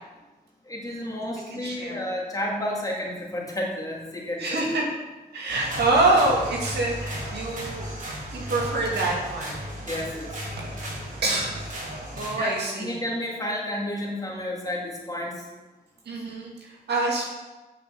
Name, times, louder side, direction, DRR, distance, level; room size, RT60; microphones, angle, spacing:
voice 1, 0.7-4.7 9.8-10.3 12.4-15.4, left 1 dB, 20° left, -2 dB, 2.7 m, -31 dB
voice 2, 1.5-2.0 4.4-4.9 5.3-7.9 8.3-9.6 10.5-13.0 16.1-17.3, right 2 dB, 85° right, -1 dB, 2.5 m, -26 dB
sound 1, 5.5-12.3, equal, 50° right, 3.3 m, -35 dB
8.4 x 6.2 x 7.3 m, 1.2 s
cardioid pair, 100°, 17 cm